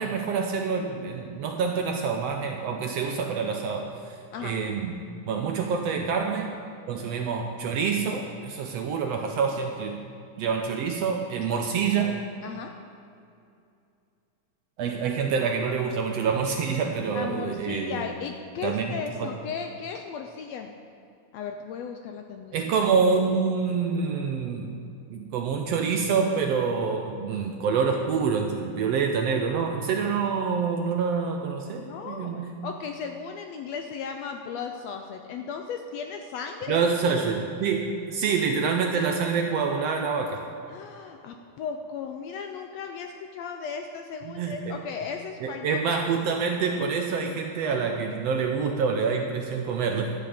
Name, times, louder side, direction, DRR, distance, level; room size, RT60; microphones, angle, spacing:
voice 1, 0.0-4.9 5.2-6.5 6.9-10.0 10.4-12.1 14.8-18.1 18.6-18.9 19.2-19.3 22.5-24.8 25.1-32.5 36.7-40.4 44.2-44.8 45.4-50.1, right 5 dB, 75° right, 3 dB, 1.6 m, -27 dB
voice 2, 17.1-20.8 21.3-22.7 31.8-36.8 40.7-46.0, left 6 dB, 75° left, 4 dB, 1.6 m, -36 dB
13.0 x 9.5 x 5.1 m, 2.5 s
omnidirectional pair, 3.5 m